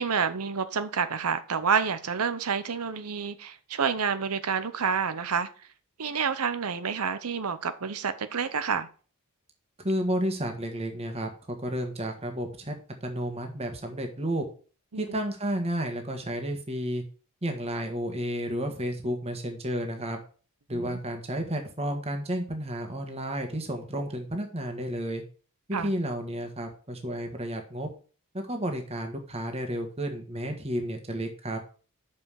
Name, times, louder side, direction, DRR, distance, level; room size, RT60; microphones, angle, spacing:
voice 1, 0.0-5.5 6.0-8.9 14.9-15.2 20.7-21.0 25.7-25.9, right 6 dB, 85° right, 0.8 m, -29 dB
voice 2, 9.8-14.5 15.0-17.0 17.4-20.2 20.7-25.2 25.8-27.9 28.3-31.6, right 1 dB, 30° right, 1.5 m, -32 dB
6.7 x 5.6 x 6.4 m
head